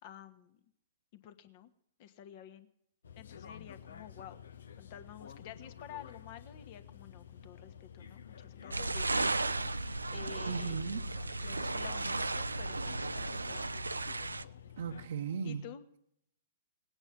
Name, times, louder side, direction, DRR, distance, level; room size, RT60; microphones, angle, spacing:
voice 1, 0.0-0.6 1.1-1.7 2.0-2.7 3.2-4.4 4.8-10.9 11.4-13.8 15.4-15.8, left 10 dB, 45° left, 10 dB, 1.4 m, -51 dB
sound 1, 3.0-15.1, left 8 dB, 70° left, 0.8 m, -51 dB
sound 2, 8.7-14.4, right 2 dB, 90° right, 0.5 m, -35 dB
voice 2, 10.5-11.0 14.8-15.7, right 6 dB, 70° right, 2 dB, 0.9 m, -36 dB
18.5 x 8.8 x 7.4 m, 0.73 s
figure-of-eight pair, 110°, 0 cm